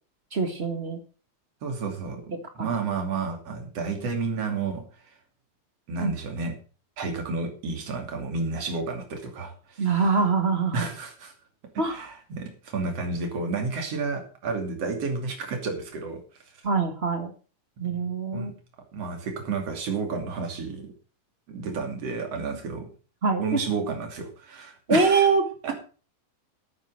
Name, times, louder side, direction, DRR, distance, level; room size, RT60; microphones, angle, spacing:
voice 1, 0.3-1.0 2.6-2.7 6.0-6.1 9.8-10.9 11.8-12.1 16.6-17.3 17.8-18.5 23.2-23.6 24.9-25.4, right 4 dB, 30° right, 6 dB, 1.3 m, -24 dB
voice 2, 1.6-2.3 2.6-4.8 5.9-6.5 7.0-9.9 10.7-11.3 11.7-16.2 17.8-18.1 18.3-18.5 18.9-20.9 21.5-22.9 23.4-25.3 25.6-25.7, right 4 dB, 50° right, 4 dB, 3.6 m, -31 dB
12.0 x 9.1 x 6.4 m, 0.38 s
omnidirectional pair, 3.6 m